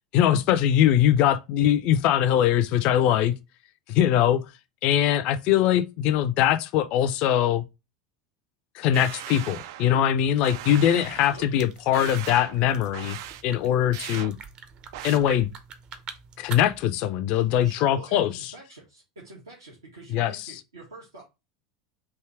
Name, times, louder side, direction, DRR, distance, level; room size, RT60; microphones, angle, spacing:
voice 1, 0.1-3.3 3.9-4.4 4.8-7.6 8.7-13.2 13.4-14.4 15.0-15.5 16.4-18.3 20.1-20.3, left 10 dB, 55° left, 0.4 m, -22 dB
sound 1, 8.9-10.0 10.4-11.4 11.9-12.6 12.9-13.4 13.9-14.3 14.9-15.2, right 13 dB, 65° right, 0.3 m, -38 dB
sound 2, 10.2-16.9, right 6 dB, 45° right, 0.7 m, -45 dB
voice 2, 11.1-11.6 17.6-21.2, right 2 dB, 85° right, 1.4 m, -47 dB
3.6 x 2.7 x 4.5 m
hypercardioid pair, 80°, 2 cm